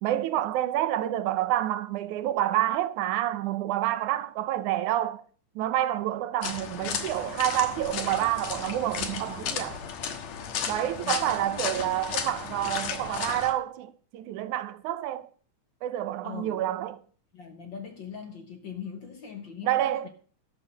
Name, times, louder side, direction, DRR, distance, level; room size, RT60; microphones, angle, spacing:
voice 1, 0.0-5.2 5.6-9.8 10.7-15.3 15.8-17.0 19.6-20.1, right 13 dB, 85° right, 2.2 m, -28 dB
sound 1, 6.4-13.5, left 7 dB, 70° left, 2.5 m, -34 dB
voice 2, 11.0-11.7 16.2-16.6 17.3-20.1, left 7 dB, 55° left, 1.5 m, -41 dB
12.5 x 6.4 x 6.6 m
omnidirectional pair, 3.4 m